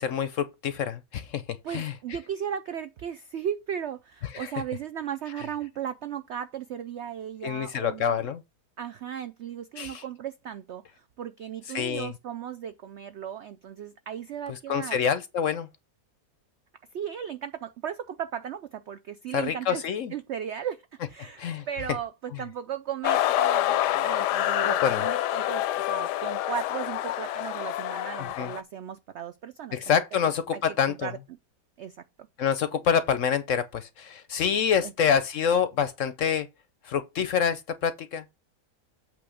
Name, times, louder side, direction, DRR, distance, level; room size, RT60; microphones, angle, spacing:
voice 1, 0.0-1.4 1.7-1.9 4.3-4.5 7.4-8.4 9.8-10.0 11.7-12.1 14.5-15.7 19.3-20.1 21.4-21.7 22.3-22.4 24.6-25.0 28.2-28.5 29.7-31.1 32.4-36.5 36.8-38.2, left 7 dB, 65° left, 0.8 m, -27 dB
voice 2, 1.6-8.3 8.8-15.0 16.9-19.8 20.1-29.8 30.5-30.6 30.9-31.2 31.8-32.3 34.8-34.9, right 9 dB, 75° right, 0.6 m, -36 dB
sound 1, 23.0-28.6, left 13 dB, 85° left, 1.2 m, -27 dB
8.3 x 3.1 x 6.3 m
omnidirectional pair, 1.8 m